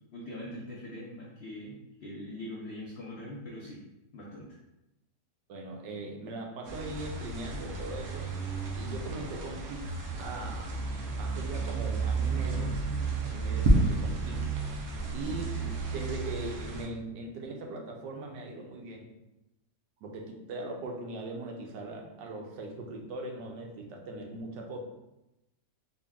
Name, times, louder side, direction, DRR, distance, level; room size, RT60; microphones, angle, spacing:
voice 1, 0.1-3.8 4.1-4.5, left 1 dB, 80° left, -3 dB, 0.5 m, -42 dB
voice 2, 5.5-8.3 8.7-9.8 10.1-10.8 11.2-12.8 13.2-19.1 20.0-24.8, right 2 dB, 85° right, 1 dB, 1.3 m, -40 dB
sound 1, 6.6-16.9, right 3 dB, 65° right, 1.0 m, -31 dB
4.0 x 2.2 x 3.4 m, 0.93 s
omnidirectional pair, 1.8 m